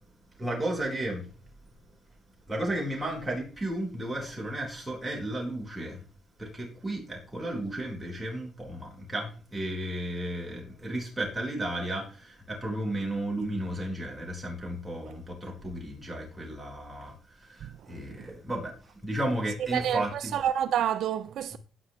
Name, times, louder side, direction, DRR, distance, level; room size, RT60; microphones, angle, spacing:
voice 1, 0.4-1.3 2.5-6.0 6.4-18.8 19.0-20.3, right 1 dB, 15° right, 4.4 m, -33 dB
voice 2, 17.6-18.3 19.7-21.6, right 10 dB, 75° right, 0.4 m, -29 dB
17.0 x 5.9 x 3.1 m
cardioid pair, 90°, 0 cm